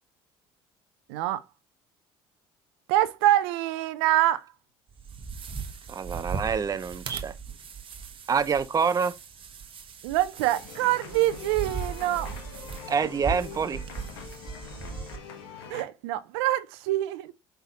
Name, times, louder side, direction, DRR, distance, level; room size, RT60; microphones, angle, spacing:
voice 1, 1.1-1.4 2.9-4.5 10.0-12.3 15.7-17.3, right 14 dB, 80° right, 0.5 m, -25 dB
sound 1, 4.9-15.2, right 5 dB, 40° right, 1.0 m, -38 dB
voice 2, 5.9-7.3 8.3-9.1 12.9-13.8, right 6 dB, 25° right, 0.5 m, -26 dB
sound 2, 10.4-15.8, left 6 dB, 85° left, 1.0 m, -43 dB
5.6 x 3.4 x 2.8 m
hypercardioid pair, 70°, 13 cm